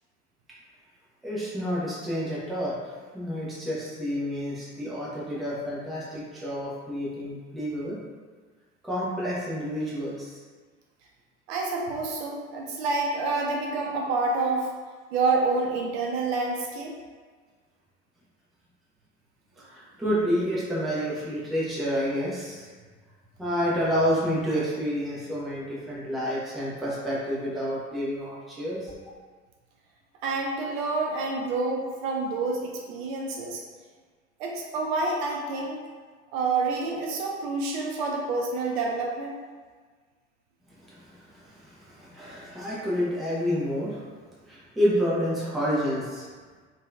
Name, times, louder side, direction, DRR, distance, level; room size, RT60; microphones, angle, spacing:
voice 1, 1.2-2.7 3.1-8.0 8.8-10.4 19.6-22.7 23.4-28.9 40.9-44.0 44.5-46.3, equal, ahead, -8 dB, 0.4 m, -29 dB
voice 2, 11.5-14.7 15.1-16.9 30.2-33.6 34.4-35.8 36.3-39.4, right 3 dB, 50° right, -1 dB, 0.5 m, -28 dB
2.7 x 2.2 x 2.2 m, 1.5 s
figure-of-eight pair, 70°, 40 cm